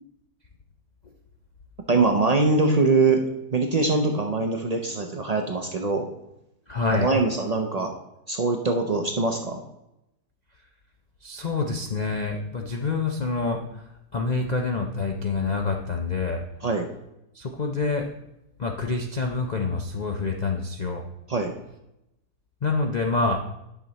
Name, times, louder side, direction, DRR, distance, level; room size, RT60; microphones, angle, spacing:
voice 1, 1.9-6.1 6.9-7.9 8.3-9.6 16.6-16.9 21.3-21.5, right 3 dB, 85° right, 4 dB, 0.3 m, -23 dB
voice 2, 6.7-7.1 11.2-13.6 14.1-16.4 17.3-18.1 18.6-21.0 22.6-23.4, left 4 dB, 60° left, 2 dB, 0.4 m, -26 dB
10.5 x 6.2 x 4.0 m, 0.87 s
omnidirectional pair, 1.8 m